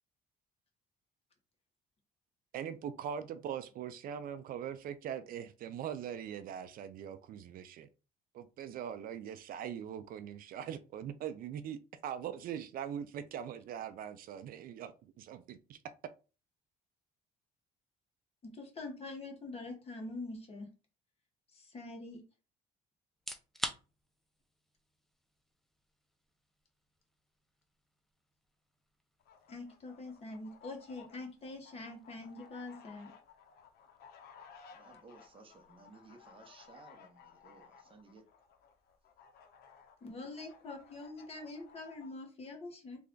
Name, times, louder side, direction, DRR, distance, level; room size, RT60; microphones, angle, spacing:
voice 1, 2.5-7.9 8.3-11.8 12.0-15.8, right 9 dB, 60° right, 0.4 m, -41 dB
voice 2, 18.4-20.7 21.5-22.2 29.5-33.1 40.0-43.0, left 2 dB, 35° left, 1.3 m, -45 dB
sound 1, 23.1-37.9, equal, ahead, 0.4 m, -51 dB
sound 2, 29.2-42.1, left 6 dB, 65° left, 0.7 m, -58 dB
voice 3, 34.7-38.2 40.1-40.3, right 3 dB, 30° right, 0.8 m, -58 dB
3.3 x 2.4 x 3.7 m
cardioid pair, 110°, 17 cm